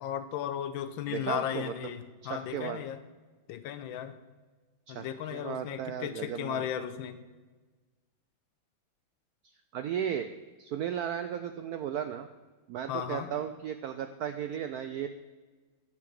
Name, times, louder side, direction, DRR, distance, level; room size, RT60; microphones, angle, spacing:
voice 1, 0.0-3.0 3.5-4.2 4.9-7.2 12.9-13.3, left 10 dB, 85° left, 11 dB, 1.4 m, -35 dB
voice 2, 1.1-1.9 2.2-2.8 4.9-6.7 9.7-10.3 10.6-12.3 12.7-15.1, right 9 dB, 80° right, 9 dB, 0.8 m, -35 dB
9.6 x 4.6 x 7.5 m, 1.3 s
omnidirectional pair, 2.1 m